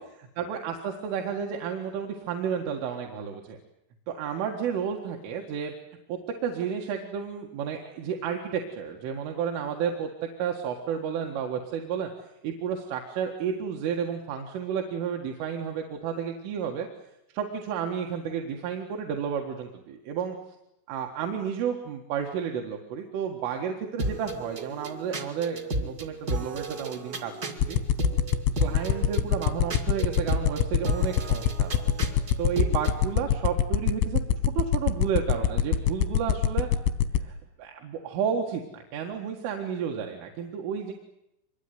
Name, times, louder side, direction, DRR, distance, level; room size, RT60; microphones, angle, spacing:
voice 1, 0.4-3.6 4.1-5.7 6.1-12.1 12.4-16.9 17.3-20.4 20.9-27.3 27.7-27.8 28.5-31.9 32.4-34.2 34.6-36.7 37.2-40.9, right 7 dB, 75° right, 2 dB, 4.3 m, -31 dB
sound 1, 24.0-33.0, right 2 dB, 55° right, 1.0 m, -33 dB
sound 2, 27.6-37.2, left 10 dB, 90° left, 3.9 m, -22 dB
24.5 x 22.0 x 9.5 m, 0.86 s
omnidirectional pair, 5.7 m